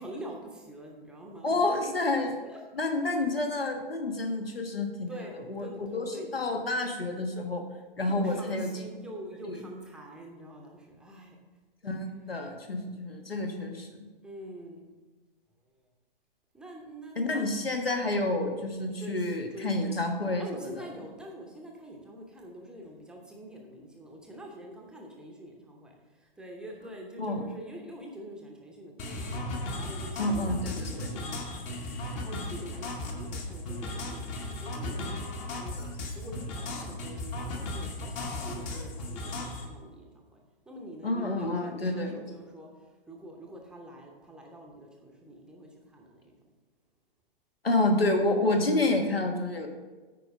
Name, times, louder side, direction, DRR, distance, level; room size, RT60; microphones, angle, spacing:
voice 1, 0.0-1.6 5.1-6.3 8.0-11.4 14.2-14.9 16.5-17.4 19.0-20.0 20.4-25.9 26.2-35.9 36.1-40.4 40.7-42.7 43.1-46.3, right 1 dB, 5° right, 0 dB, 0.7 m, -45 dB
voice 2, 1.4-2.4 2.7-7.6 8.0-8.9 9.5-9.6 11.8-13.9 17.1-20.9 27.2-27.4 30.2-31.1 41.0-42.1 47.6-49.7, left 2 dB, 80° left, 4 dB, 1.4 m, -29 dB
sound 1, 29.0-39.7, left 2 dB, 25° left, 0.9 m, -36 dB
9.1 x 4.8 x 5.1 m, 1.3 s
figure-of-eight pair, 115°, 29 cm